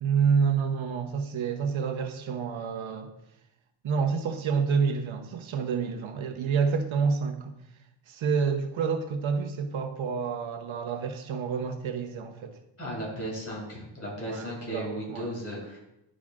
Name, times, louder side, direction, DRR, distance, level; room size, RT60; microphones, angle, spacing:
voice 1, 0.0-3.1 3.8-7.5 8.1-12.6 14.2-15.3, right 6 dB, 85° right, 5 dB, 0.9 m, -28 dB
voice 2, 12.8-15.8, equal, 30° left, -3 dB, 2.6 m, -35 dB
11.5 x 5.0 x 2.4 m, 0.84 s
wide cardioid pair, 165°, 46 cm